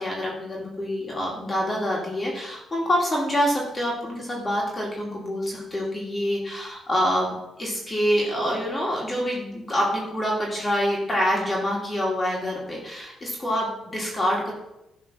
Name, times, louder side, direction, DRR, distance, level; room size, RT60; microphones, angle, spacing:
voice 1, 0.0-7.3 7.6-14.5, equal, 25° left, -3 dB, 2.0 m, -26 dB
10.5 x 3.7 x 5.9 m, 0.89 s
cardioid pair, 100°, 0 cm